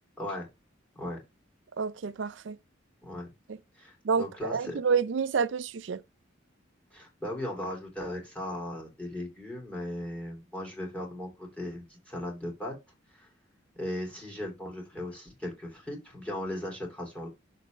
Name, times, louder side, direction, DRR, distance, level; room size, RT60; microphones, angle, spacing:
voice 1, 0.2-0.5 0.9-1.2 3.0-3.3 3.7-4.8 6.9-12.7 13.1-13.3 13.8-17.3, left 1 dB, 5° left, 2.7 m, -37 dB
voice 2, 1.8-2.6 3.5-3.6 4.0-6.0, right 5 dB, 65° right, 0.4 m, -29 dB
6.7 x 4.1 x 5.1 m
head